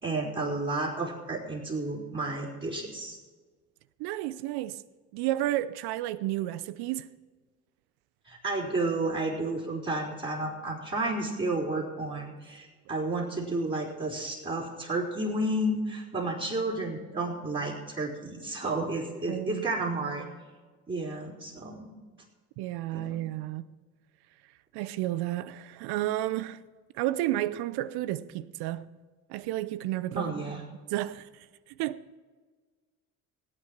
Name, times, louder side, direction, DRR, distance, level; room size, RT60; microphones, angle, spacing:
voice 1, 0.0-3.2 8.3-20.3 20.9-21.9 22.9-23.2 30.2-30.6, right 2 dB, 25° right, 4.0 m, -31 dB
voice 2, 4.0-4.8 5.1-7.1 19.3-19.7 22.6-23.7 24.7-26.6 27.0-28.9 29.3-30.3 30.9-31.3 31.8-32.0, right 14 dB, 65° right, 0.7 m, -31 dB
17.5 x 8.7 x 5.9 m
hypercardioid pair, 60°, 42 cm